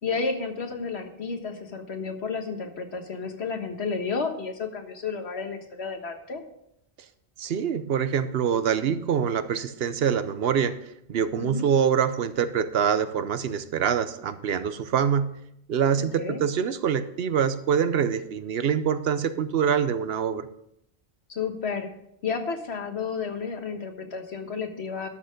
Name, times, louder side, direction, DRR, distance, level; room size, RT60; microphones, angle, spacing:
voice 1, 0.0-6.4 11.4-11.7 16.0-16.4 21.3-21.9 22.2-25.1, left 5 dB, 90° left, 5 dB, 1.6 m, -31 dB
voice 2, 7.4-15.3 15.7-20.5, right 7 dB, 70° right, 12 dB, 0.9 m, -25 dB
12.0 x 6.5 x 5.2 m, 0.77 s
omnidirectional pair, 1.1 m